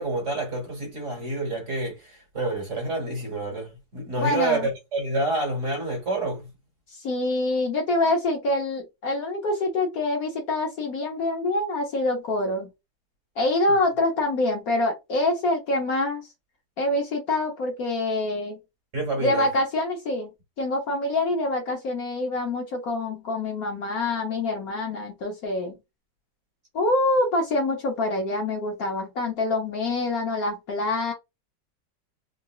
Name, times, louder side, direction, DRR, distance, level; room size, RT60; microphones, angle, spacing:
voice 1, 0.0-6.5 18.9-19.5, right 2 dB, 45° right, 1.4 m, -28 dB
voice 2, 4.2-4.7 7.0-12.7 13.4-16.2 16.8-18.6 19.2-20.3 20.6-25.8 26.7-31.1, left 2 dB, 60° left, 1.1 m, -25 dB
3.9 x 2.3 x 2.3 m
omnidirectional pair, 2.0 m